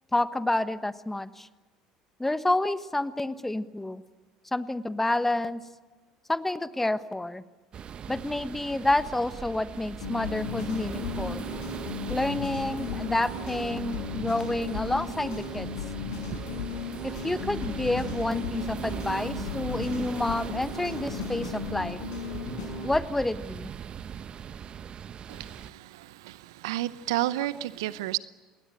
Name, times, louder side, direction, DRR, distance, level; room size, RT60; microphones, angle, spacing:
voice 1, 0.1-1.5 2.2-4.0 4.5-5.6 6.3-7.4 8.1-11.4 12.1-15.7 17.0-22.0 22.8-23.7, left 2 dB, 10° left, 1.3 m, -29 dB
sound 1, 7.7-25.7, right 8 dB, 40° right, 1.1 m, -39 dB
sound 2, 10.0-22.9, left 6 dB, 75° left, 6.4 m, -36 dB
voice 2, 25.3-28.2, right 16 dB, 70° right, 0.7 m, -31 dB
27.5 x 20.5 x 8.8 m
figure-of-eight pair, 65°, 2 cm